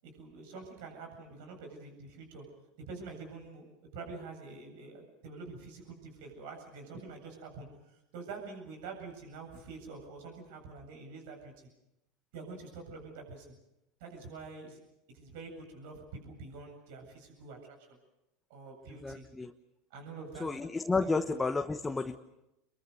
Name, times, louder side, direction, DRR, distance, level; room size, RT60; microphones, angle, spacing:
voice 1, 0.0-2.4 2.8-3.7 3.9-11.7 12.3-13.5 14.0-14.8 15.1-18.0 18.5-19.3 19.9-20.5 21.0-21.2, right 4 dB, 65° right, 3 dB, 7.9 m, -46 dB
voice 2, 19.0-19.5 20.4-22.2, left 3 dB, 15° left, 6 dB, 1.2 m, -31 dB
28.0 x 23.0 x 6.7 m, 0.91 s
hypercardioid pair, 85°, 0 cm